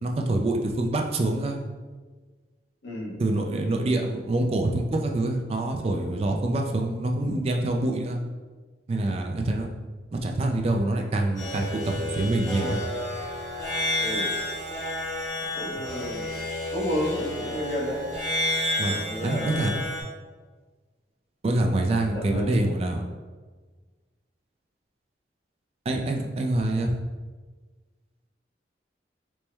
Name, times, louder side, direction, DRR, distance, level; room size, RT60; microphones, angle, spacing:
voice 1, 0.0-1.6 3.2-8.2 8.9-9.7 10.1-12.8 18.8-19.0 19.2-19.7 21.4-23.0 25.9-26.9, right 2 dB, 35° right, 2 dB, 0.3 m, -26 dB
voice 2, 2.8-3.2 14.0-14.3 15.4-16.3 16.7-18.1 18.8-19.9 21.5-21.7 22.1-22.6, equal, 70° left, -3 dB, 0.9 m, -32 dB
sound 1, 11.4-20.0, left 1 dB, 20° left, 0.8 m, -30 dB
4.4 x 2.1 x 3.3 m, 1.4 s
head